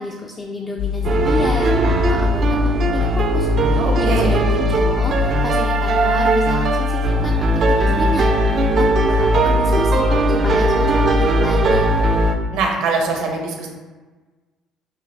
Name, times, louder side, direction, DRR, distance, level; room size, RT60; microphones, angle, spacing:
voice 1, 0.0-12.0, left 2 dB, 30° left, 0 dB, 0.5 m, -30 dB
sound 1, 0.8-12.3, left 7 dB, 75° left, 0.7 m, -23 dB
sound 2, 1.0-12.4, right 3 dB, 50° right, 0.5 m, -18 dB
voice 2, 3.8-4.3 12.5-13.7, right 3 dB, 80° right, 0 dB, 1.0 m, -22 dB
5.7 x 2.3 x 3.4 m, 1.3 s
supercardioid pair, 85°, 0 cm